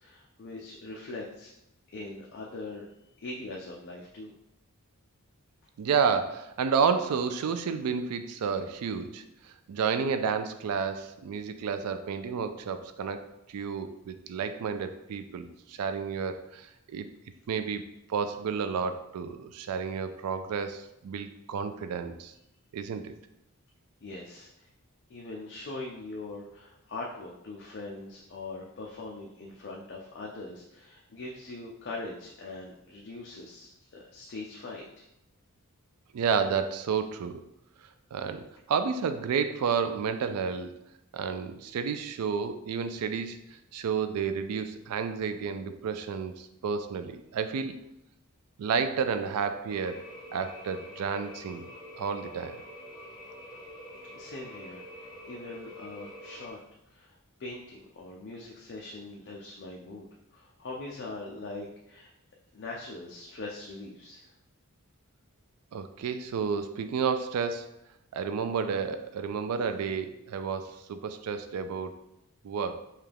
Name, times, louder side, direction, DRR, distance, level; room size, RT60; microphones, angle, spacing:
voice 1, 0.0-1.5 1.9-2.9 3.2-4.3 24.0-24.7 25.1-35.0 54.1-56.6 56.9-62.1 62.5-64.3, left 2 dB, 50° left, -2 dB, 0.5 m, -42 dB
voice 2, 5.8-17.1 17.5-17.8 18.1-22.3 22.7-23.1 36.1-37.4 38.1-40.7 41.1-47.8 48.6-50.1 50.3-52.6 65.7-67.7 68.1-71.9 72.4-72.8, right 6 dB, 85° right, 9 dB, 0.3 m, -31 dB
sound 1, 49.7-56.5, equal, 20° left, 0.7 m, -46 dB
5.5 x 2.3 x 3.4 m, 0.84 s
head